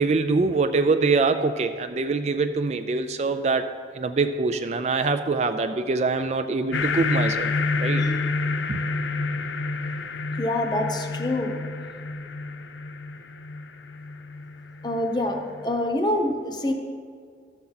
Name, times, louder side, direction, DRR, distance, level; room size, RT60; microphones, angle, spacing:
voice 1, 0.0-3.7 3.9-7.5 7.8-8.1 8.7-8.8, right 3 dB, 40° right, 9 dB, 0.3 m, -24 dB
sound 1, 6.7-15.7, left 3 dB, 85° left, 0.5 m, -29 dB
voice 2, 10.4-11.5 14.8-16.7, left 1 dB, 25° left, 3 dB, 0.8 m, -26 dB
12.5 x 7.2 x 4.0 m, 2.1 s
head